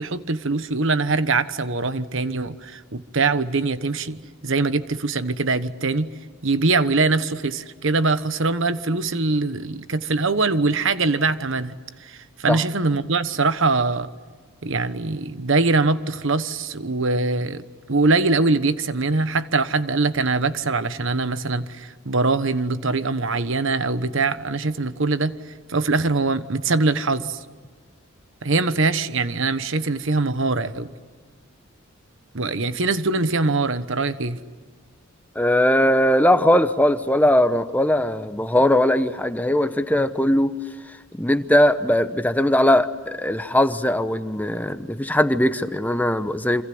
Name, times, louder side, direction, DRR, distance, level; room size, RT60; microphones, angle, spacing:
voice 1, 0.0-6.1 6.4-14.1 14.6-25.3 25.7-27.4 28.4-30.9 32.3-34.4, right 3 dB, 60° right, 12 dB, 1.2 m, -23 dB
voice 2, 35.3-40.6 41.1-46.6, left 1 dB, 10° left, 10 dB, 1.0 m, -20 dB
28.0 x 26.5 x 7.9 m, 1.5 s
head